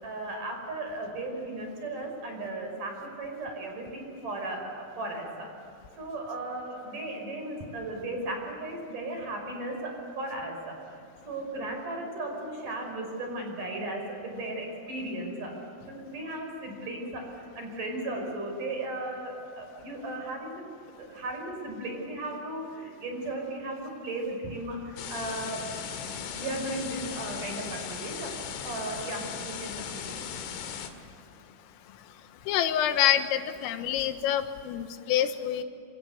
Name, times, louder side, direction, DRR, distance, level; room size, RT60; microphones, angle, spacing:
voice 1, 0.0-5.5 6.0-10.8 11.2-15.6 15.8-17.3 17.6-20.6 21.0-25.7 26.4-28.3 28.6-30.2, right 2 dB, 40° right, 2 dB, 6.7 m, -36 dB
sound 1, 25.0-30.9, left 7 dB, 70° left, 4.2 m, -37 dB
voice 2, 32.5-35.6, left 11 dB, 90° left, 9 dB, 3.9 m, -26 dB
26.5 x 26.0 x 8.2 m, 2.6 s
omnidirectional pair, 5.8 m